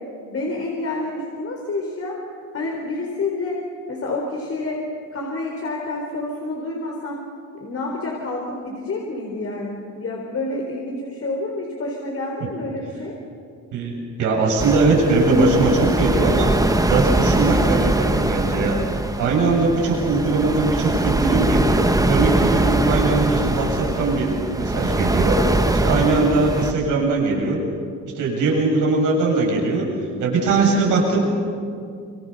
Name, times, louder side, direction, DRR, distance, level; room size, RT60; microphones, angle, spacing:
voice 1, 0.3-2.1 2.5-3.6 3.9-4.8 5.1-7.2 7.6-13.1, left 2 dB, 50° left, -1 dB, 4.3 m, -28 dB
voice 2, 13.7-27.6 28.1-31.2, right 3 dB, 85° right, -1 dB, 7.3 m, -20 dB
sound 1, 14.6-26.7, right 2 dB, 10° right, 1.7 m, -22 dB
27.5 x 24.5 x 6.9 m, 2.3 s
cardioid pair, 90°, 30 cm